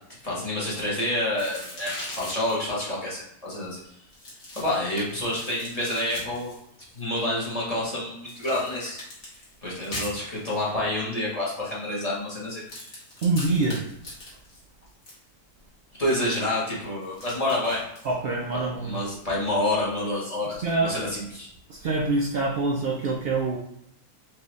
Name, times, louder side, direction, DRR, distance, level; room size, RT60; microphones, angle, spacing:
voice 1, 0.2-4.0 4.5-6.5 6.9-9.0 9.6-12.8 16.0-17.9 18.5-21.5, left 1 dB, 25° left, -7 dB, 1.1 m, -28 dB
sound 1, 1.4-2.7 4.1-7.0 8.3-10.7 12.6-15.2 17.0-18.1, left 1 dB, 55° left, 1.6 m, -41 dB
voice 2, 13.2-13.8 18.0-19.0 20.6-20.9 21.7-23.6, right 3 dB, 85° right, -1 dB, 0.5 m, -25 dB
4.5 x 2.7 x 3.1 m, 0.76 s
omnidirectional pair, 1.6 m